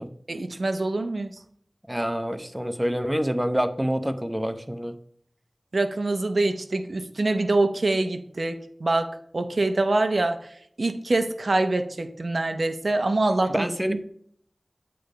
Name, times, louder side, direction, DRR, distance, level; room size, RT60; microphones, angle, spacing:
voice 1, 0.3-1.3 5.7-10.4 10.8-14.0, right 2 dB, 70° right, 8 dB, 0.7 m, -25 dB
voice 2, 1.9-5.0 13.5-14.0, equal, 10° right, 9 dB, 0.7 m, -27 dB
8.6 x 3.4 x 5.1 m, 0.65 s
wide cardioid pair, 45°, 0 cm